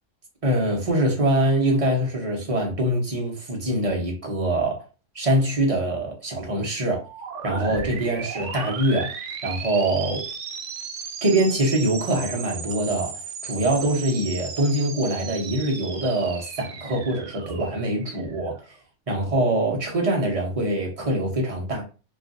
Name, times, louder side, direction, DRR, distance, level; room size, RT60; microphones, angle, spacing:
voice 1, 0.4-4.8 5.1-7.0 7.4-9.2 9.4-10.2 11.2-18.6 19.1-21.8, right 1 dB, 30° right, 0.9 m, -24 dB
sound 1, 7.0-18.7, right 6 dB, 80° right, 0.9 m, -36 dB
3.1 x 2.5 x 2.5 m
omnidirectional pair, 1.3 m